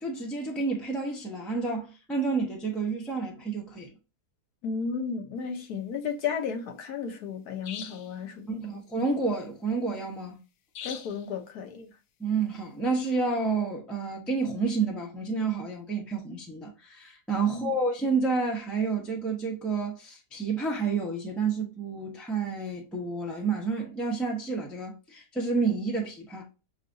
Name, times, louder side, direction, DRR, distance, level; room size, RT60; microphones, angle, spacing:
voice 1, 0.0-3.9 8.5-10.4 12.2-26.4, right 4 dB, ahead, 0.6 m, -29 dB
voice 2, 4.6-8.9 10.8-11.9 17.5-17.7, left 6 dB, 70° left, 1.4 m, -34 dB
sound 1, 7.6-8.1 10.7-11.3, left 9 dB, 90° left, 1.2 m, -40 dB
6.5 x 2.4 x 2.6 m
omnidirectional pair, 1.7 m